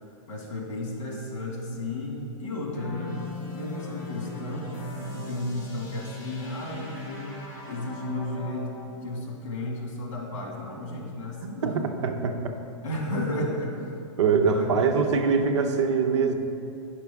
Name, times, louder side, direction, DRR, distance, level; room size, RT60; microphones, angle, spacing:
voice 1, 0.3-3.2 3.5-4.8 5.1-11.8 12.8-13.9 14.3-14.7, left 1 dB, 70° left, -1 dB, 1.9 m, -33 dB
sound 1, 2.7-8.9, left 2 dB, 35° left, 1.6 m, -39 dB
voice 2, 11.4-12.3 14.2-16.3, right 5 dB, 60° right, 5 dB, 0.7 m, -23 dB
9.5 x 5.9 x 3.5 m, 2.6 s
supercardioid pair, 180°, 17 cm